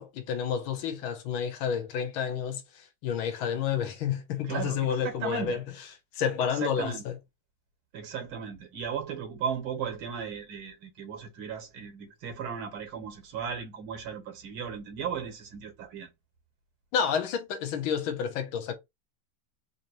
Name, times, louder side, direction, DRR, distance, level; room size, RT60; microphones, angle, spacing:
voice 1, 0.0-5.6 6.1-7.2 16.9-18.7, left 8 dB, 80° left, 1.6 m, -30 dB
voice 2, 4.4-5.6 6.6-7.0 7.9-16.1, right 7 dB, 85° right, 2.0 m, -36 dB
4.4 x 2.7 x 3.0 m
omnidirectional pair, 2.2 m